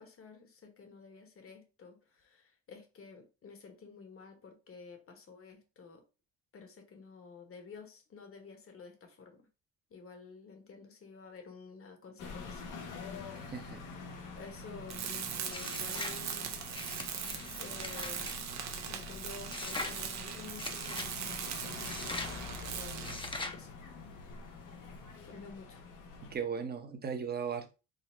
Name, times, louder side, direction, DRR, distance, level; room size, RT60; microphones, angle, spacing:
voice 1, 0.0-6.0 6.5-9.4 9.9-12.7 14.3-16.5 17.6-18.3 18.9-23.2 23.5-23.7 25.2-25.8, left 4 dB, 45° left, 1.2 m, -51 dB
sound 1, 12.2-26.4, left 4 dB, 85° left, 1.0 m, -46 dB
voice 2, 13.5-13.8 26.2-27.7, right 6 dB, 30° right, 0.8 m, -37 dB
Tools, 14.9-23.3, right 8 dB, 65° right, 0.7 m, -40 dB
sound 2, 15.5-16.2 16.7-18.4 19.5-20.0 20.6-21.1 21.8-22.4 23.0-23.6, left 2 dB, 15° left, 0.7 m, -41 dB
3.8 x 2.0 x 4.3 m
cardioid pair, 90°, 30 cm